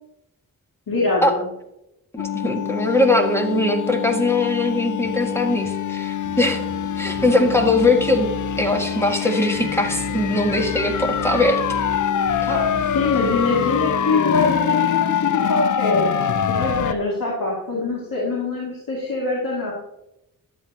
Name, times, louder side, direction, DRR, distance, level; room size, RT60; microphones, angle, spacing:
voice 1, 0.9-1.5 12.5-12.6 12.9-16.1 16.5-19.7, left 3 dB, 80° left, -5 dB, 2.5 m, -23 dB
sound 1, 2.2-16.9, left 9 dB, 60° left, 0.6 m, -24 dB
voice 2, 2.2-6.7 7.0-8.3 8.6-11.6 12.4-12.5, left 2 dB, 5° left, 3 dB, 1.9 m, -20 dB
sound 2, 5.0-14.5, right 5 dB, 80° right, 1.0 m, -36 dB
12.5 x 7.9 x 2.9 m, 0.86 s
cardioid pair, 75°, 34 cm